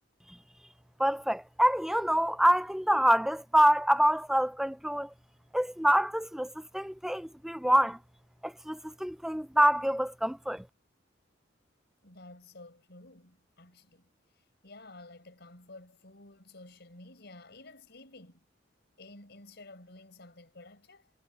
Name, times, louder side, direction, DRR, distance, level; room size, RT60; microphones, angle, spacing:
voice 1, 1.0-5.1 5.5-8.0 8.4-10.7, equal, ahead, 0.6 m, -26 dB
voice 2, 12.0-14.1 14.6-18.5 19.0-21.1, left 2 dB, 60° left, 5.3 m, -52 dB
head